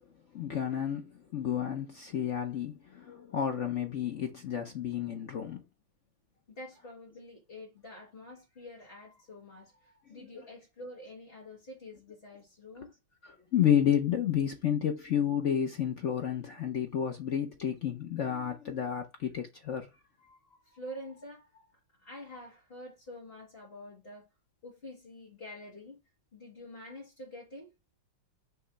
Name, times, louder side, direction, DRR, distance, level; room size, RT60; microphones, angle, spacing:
voice 1, 0.3-5.6 10.2-10.3 13.2-19.9, left 9 dB, 60° left, 0.7 m, -31 dB
voice 2, 6.5-12.9 20.2-21.7 22.0-24.3 24.6-26.0 26.3-27.7, left 1 dB, 30° left, 1.8 m, -47 dB
5.9 x 3.1 x 5.6 m
omnidirectional pair, 2.2 m